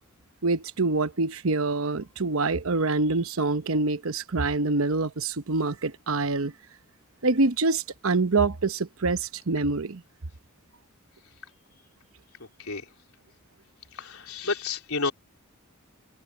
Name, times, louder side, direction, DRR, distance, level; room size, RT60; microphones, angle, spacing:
voice 1, 0.4-6.5 7.2-10.0, right 3 dB, 70° right, 1.0 m, -25 dB
voice 2, 13.9-15.1, left 4 dB, 85° left, 3.8 m, -30 dB
head